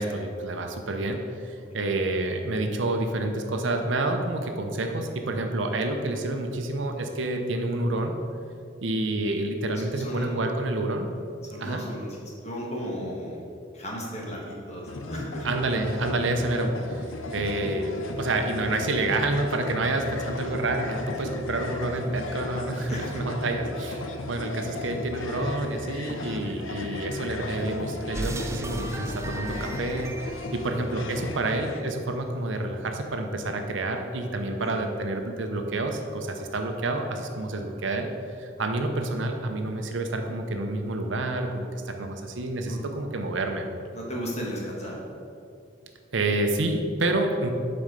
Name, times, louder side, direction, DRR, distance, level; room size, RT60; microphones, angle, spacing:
voice 1, 0.0-8.1 8.8-11.1 11.6-11.8 15.4-38.1 38.4-43.7 46.1-47.5, right 2 dB, 70° right, 4 dB, 0.7 m, -28 dB
voice 2, 10.0-10.4 11.4-12.2 12.4-13.4 13.7-15.5 22.9-23.0 34.6-34.8 42.6-42.8 43.9-45.0, equal, 35° left, -3 dB, 1.5 m, -35 dB
sound 1, 14.9-31.8, left 2 dB, 80° left, 0.6 m, -36 dB
sound 2, 28.1-31.6, right 2 dB, 15° right, 0.3 m, -36 dB
7.3 x 4.4 x 5.1 m, 2.5 s
head